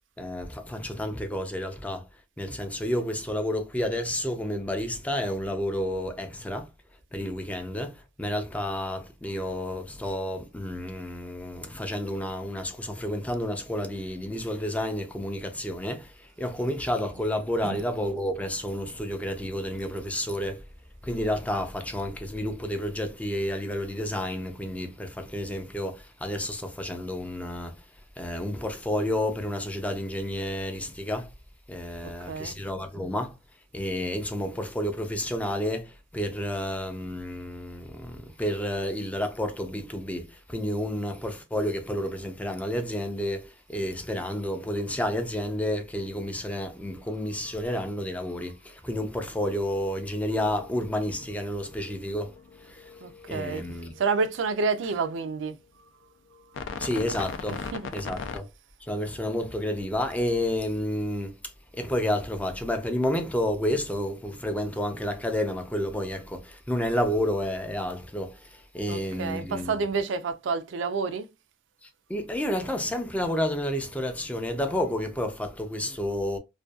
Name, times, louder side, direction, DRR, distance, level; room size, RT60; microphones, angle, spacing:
voice 1, 0.2-2.0 2.4-6.7 7.1-7.9 8.2-16.1 16.4-20.6 21.0-27.7 28.2-31.3 31.7-33.3 33.7-52.3 53.3-53.9 56.8-57.6 57.9-58.5 58.9-61.3 61.7-68.3 68.7-69.7 72.1-76.4, left 1 dB, 10° left, 0.3 m, -30 dB
sound 1, 50.4-54.6 56.5-58.4, left 5 dB, 85° left, 0.4 m, -40 dB
voice 2, 53.0-53.6 54.0-55.6 57.5-57.9 68.9-71.3, right 4 dB, 80° right, 0.4 m, -29 dB
2.4 x 2.2 x 2.3 m
head